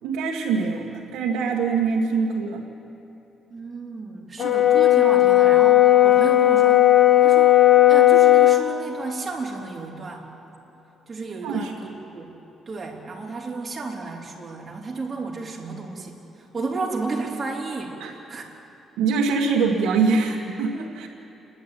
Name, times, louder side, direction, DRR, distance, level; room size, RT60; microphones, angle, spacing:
voice 1, 0.0-2.6 11.4-11.7 18.0-18.1 19.0-21.1, right 4 dB, 90° right, -3 dB, 1.9 m, -23 dB
voice 2, 3.5-6.8 7.2-7.6 7.9-10.3 11.1-12.3 12.7-18.4, right 3 dB, 30° right, -4 dB, 3.6 m, -32 dB
Brass instrument, 4.4-8.7, left 13 dB, 60° left, 1.3 m, -15 dB
30.0 x 11.0 x 9.2 m, 2.9 s
cardioid pair, 90°, 0 cm